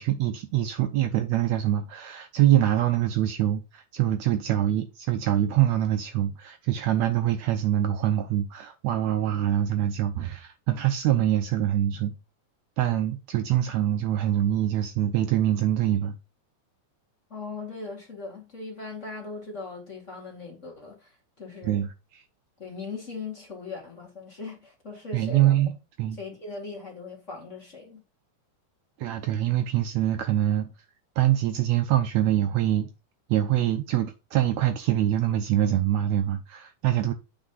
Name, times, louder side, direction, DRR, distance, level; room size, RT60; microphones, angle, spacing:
voice 1, 0.0-12.2 12.8-16.1 21.6-22.2 25.1-26.2 29.0-30.7 31.2-32.9 33.3-37.1, right 12 dB, 75° right, 1.7 m, -24 dB
voice 2, 17.3-21.9 22.6-25.5 26.2-28.0, left 4 dB, 25° left, 2.0 m, -39 dB
8.3 x 4.9 x 3.9 m
omnidirectional pair, 3.7 m